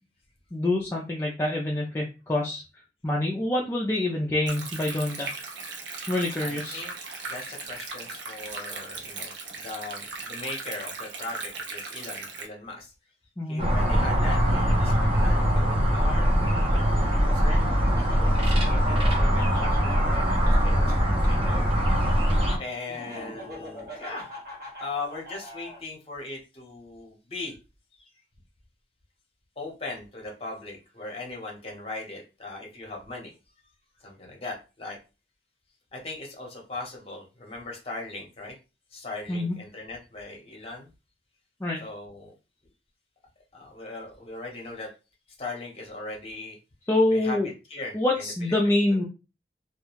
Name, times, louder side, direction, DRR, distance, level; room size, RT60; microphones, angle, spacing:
voice 1, 0.5-2.6 3.0-5.3 6.1-6.8 13.4-13.7 39.3-39.6 41.6-41.8 46.9-47.5 47.9-49.0, left 1 dB, 15° left, -3 dB, 0.3 m, -26 dB
Stream, 4.5-12.5, right 3 dB, 85° right, 0.6 m, -38 dB
voice 2, 6.4-6.9 7.3-12.9 13.5-17.7 18.1-21.7 22.6-24.3 24.8-27.6 27.9-28.1 29.6-33.3 34.0-35.0 35.9-38.5 38.9-40.9 41.8-42.3 43.5-44.9 45.4-46.6 47.1-47.4 47.7-49.0, left 2 dB, 35° left, 0 dB, 0.8 m, -39 dB
sound 1, 13.6-22.6, equal, 30° right, 0.7 m, -22 dB
Laughter, 17.7-21.3 22.9-25.8, equal, 55° right, 1.0 m, -42 dB
2.3 x 2.1 x 3.0 m, 0.30 s
head